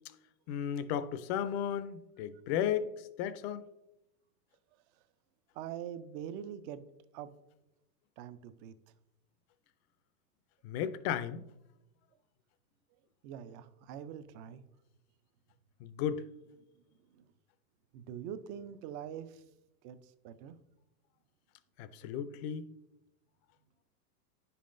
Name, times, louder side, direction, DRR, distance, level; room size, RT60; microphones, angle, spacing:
voice 1, 0.5-2.9 3.2-3.6 10.6-11.4 15.8-16.2 21.8-22.7, left 9 dB, 45° left, 0.5 m, -34 dB
voice 2, 5.5-6.8 7.1-7.3 8.2-8.8 13.2-14.6 17.1-17.3 17.9-19.4 19.8-20.6, right 9 dB, 40° right, 0.4 m, -44 dB
9.9 x 5.6 x 2.5 m
supercardioid pair, 125°, 48 cm